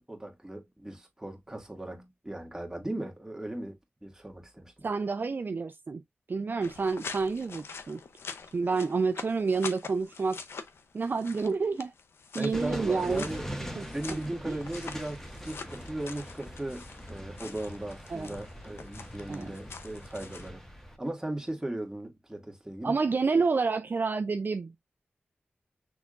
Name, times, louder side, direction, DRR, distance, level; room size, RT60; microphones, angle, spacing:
voice 1, 0.0-3.8 4.0-4.7 12.4-20.7 21.0-23.0, right 1 dB, 15° right, 1.9 m, -37 dB
voice 2, 4.8-6.0 6.3-8.0 8.5-10.4 10.9-11.9 12.3-13.2 13.8-13.9 14.5-14.6 18.1-18.3 19.3-19.5 22.8-24.8, right 4 dB, 55° right, 0.4 m, -29 dB
sound 1, 6.6-20.5, left 5 dB, 90° left, 0.7 m, -45 dB
sound 2, 12.5-21.0, equal, 10° left, 1.5 m, -42 dB
6.2 x 3.5 x 2.4 m
cardioid pair, 50°, 4 cm